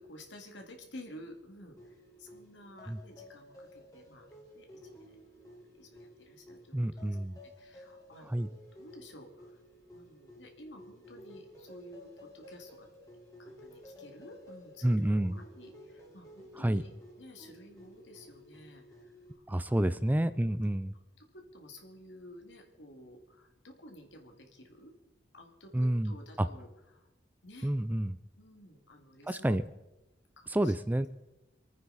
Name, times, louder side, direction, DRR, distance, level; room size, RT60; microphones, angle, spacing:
voice 1, 0.0-4.3 4.5-5.2 5.6-7.2 7.4-9.6 9.9-12.9 13.4-16.9 17.2-19.8 20.3-20.7 21.2-24.9 25.3-27.1 27.4-27.7 28.4-29.5 30.4-30.7, left 1 dB, 75° left, 3 dB, 2.3 m, -52 dB
sound 1, 1.8-19.4, left 1 dB, 20° left, 3.1 m, -54 dB
voice 2, 6.7-7.4 8.3-8.5 14.8-15.4 16.6-16.8 19.5-20.9 25.7-26.1 26.4-26.5 27.6-28.2 29.3-29.6 30.5-31.1, right 1 dB, 10° right, 13 dB, 0.4 m, -29 dB
26.5 x 9.4 x 4.1 m, 0.98 s
head